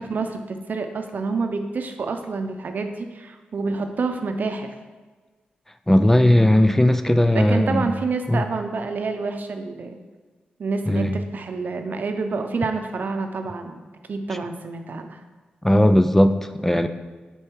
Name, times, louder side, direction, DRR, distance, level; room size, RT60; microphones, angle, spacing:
voice 1, 0.0-4.7 7.3-9.9 10.6-13.8 14.1-15.2, right 4 dB, 60° right, 6 dB, 0.7 m, -28 dB
voice 2, 5.9-7.9 8.3-8.4 10.9-11.2 15.6-16.9, left 1 dB, 10° left, 9 dB, 0.3 m, -17 dB
6.5 x 4.5 x 4.7 m, 1.4 s
cardioid pair, 85°, 3 cm